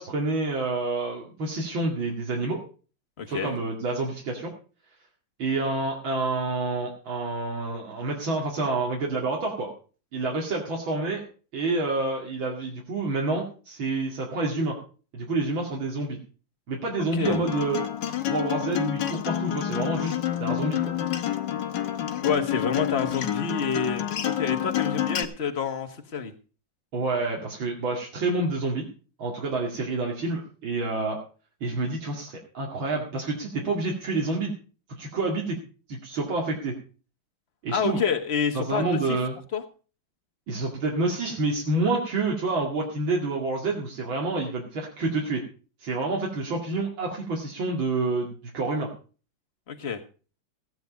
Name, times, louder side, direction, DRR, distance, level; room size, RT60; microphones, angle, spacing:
voice 1, 0.0-2.6 3.3-4.5 5.4-9.7 10.1-11.2 11.5-14.8 15.1-16.2 16.7-17.8 18.3-20.9 26.9-28.9 29.2-31.2 31.6-34.5 35.0-35.6 35.9-36.7 37.6-38.0 38.5-39.4 40.5-45.4 45.8-48.9, right 2 dB, 85° right, -1 dB, 3.0 m, -28 dB
voice 2, 3.2-3.5 17.1-17.4 22.2-26.3 37.7-39.2 39.5-39.6 49.7-50.0, left 6 dB, 35° left, 7 dB, 1.6 m, -28 dB
Acoustic guitar, 17.2-25.2, left 11 dB, 65° left, 1.7 m, -28 dB
16.0 x 9.4 x 5.2 m, 0.38 s
omnidirectional pair, 2.1 m